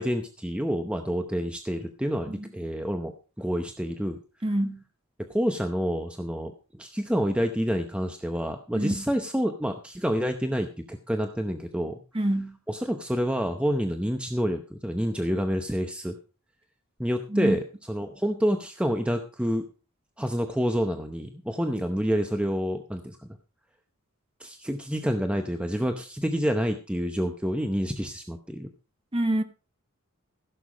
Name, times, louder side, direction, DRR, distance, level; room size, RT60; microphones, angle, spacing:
voice 1, 0.0-4.2 5.3-12.0 12.7-16.2 17.0-19.6 20.2-23.3 24.4-28.7, equal, 5° right, 0.8 m, -28 dB
voice 2, 4.4-4.8 8.7-9.0 12.1-12.6 17.3-17.6 29.1-29.4, right 1 dB, 25° right, 1.2 m, -26 dB
15.5 x 6.9 x 5.0 m
head